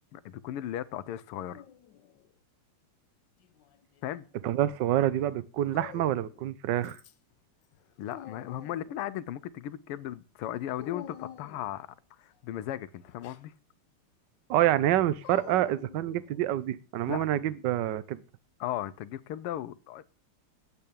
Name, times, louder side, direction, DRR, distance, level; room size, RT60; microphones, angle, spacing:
voice 1, 0.1-1.6 4.0-4.2 8.0-11.9 12.2-13.5 17.1-17.2 18.6-20.0, left 12 dB, 90° left, 1.7 m, -36 dB
Dog, 1.5-2.3 3.4-4.3 5.7-6.4 6.8-7.3 7.7-9.1 10.8-11.8 13.0-13.5 15.2-16.5, left 11 dB, 65° left, 1.3 m, -48 dB
voice 2, 4.4-7.0 14.5-18.2, right 12 dB, 65° right, 1.3 m, -27 dB
9.6 x 8.0 x 8.6 m
omnidirectional pair, 2.4 m